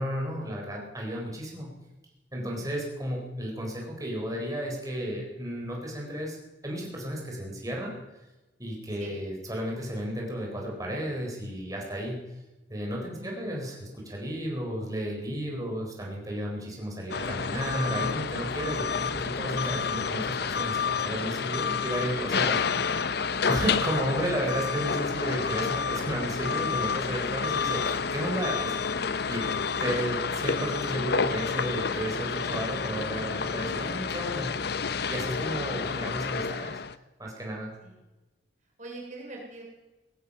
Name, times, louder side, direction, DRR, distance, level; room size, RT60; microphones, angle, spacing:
voice 1, 0.0-1.7 2.3-6.4 6.6-7.9 8.6-12.2 12.7-23.1 23.5-28.8 29.3-29.5 29.8-34.5 35.1-36.8 37.2-37.7, equal, 20° right, -1 dB, 4.2 m, -33 dB
voice 2, 2.4-2.8 9.0-9.1 13.1-13.6 29.9-30.0 35.5-36.0 37.8-38.0 38.8-39.6, right 2 dB, 45° right, 0 dB, 3.6 m, -44 dB
sound 1, 17.1-36.9, left 5 dB, 65° left, 0.7 m, -29 dB
18.5 x 14.0 x 5.6 m, 1.1 s
head